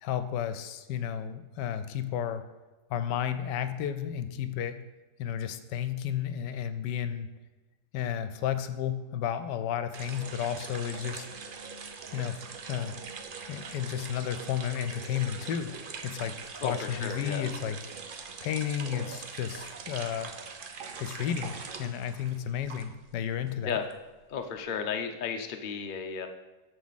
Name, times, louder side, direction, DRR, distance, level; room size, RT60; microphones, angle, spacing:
voice 1, 0.0-2.4 2.9-4.8 5.2-7.3 7.9-11.3 12.1-12.4 12.7-12.9 13.5-15.7 16.0-16.4 16.6-17.8 18.4-20.3 21.0-21.5 21.8-23.8, left 9 dB, 80° left, 11 dB, 1.2 m, -32 dB
sound 1, 9.9-23.1 23.4-24.6, right 5 dB, 75° right, 0.4 m, -42 dB
voice 2, 16.6-17.4 23.6-23.9 24.3-26.3, left 6 dB, 60° left, 5 dB, 0.5 m, -33 dB
13.5 x 4.9 x 4.1 m, 1.2 s
omnidirectional pair, 1.9 m